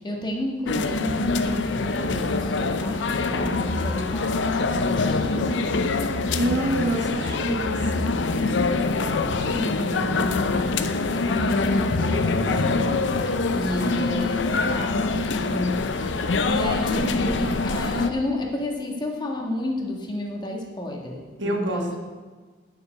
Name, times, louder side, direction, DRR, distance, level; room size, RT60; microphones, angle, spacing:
voice 1, 0.0-5.6 9.0-22.0, left 1 dB, 25° left, 0 dB, 1.6 m, -31 dB
sound 1, 0.7-18.1, left 3 dB, 80° left, 0.7 m, -24 dB
voice 2, 6.3-8.2 9.8-9.9 21.4-22.0, right 1 dB, 75° right, 2 dB, 1.6 m, -27 dB
sound 2, 9.1-9.7 10.0-10.1 10.3-10.9 11.2-11.9 12.4-14.2, equal, 20° right, 2.4 m, -43 dB
9.9 x 6.8 x 7.6 m, 1.4 s
head